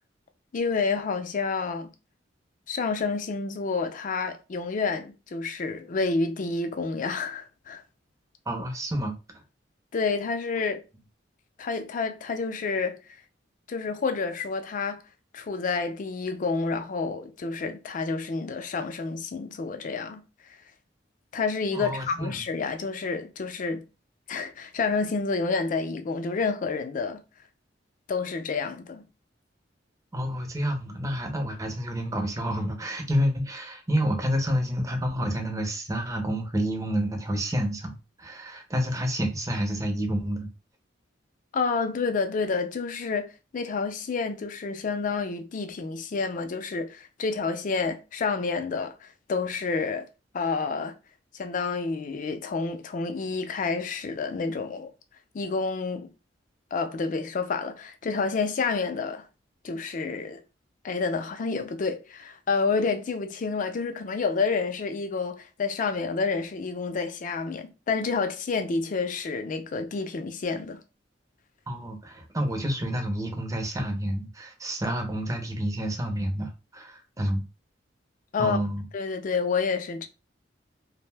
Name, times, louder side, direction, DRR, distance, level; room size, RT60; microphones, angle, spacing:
voice 1, 0.5-1.9 2.7-7.8 9.9-10.8 11.6-13.0 13.7-15.0 15.3-20.2 21.3-23.8 24.3-27.2 28.1-29.1 41.5-43.3 43.5-50.1 50.3-50.9 51.3-54.9 55.3-56.1 56.7-59.3 59.6-60.4 60.8-70.8 78.3-78.6 78.9-80.1, left 4 dB, 45° left, 0.4 m, -29 dB
voice 2, 8.5-9.1 21.7-22.4 30.1-40.5 71.7-77.4 78.4-78.8, equal, 20° right, 0.5 m, -29 dB
2.5 x 2.0 x 3.3 m
head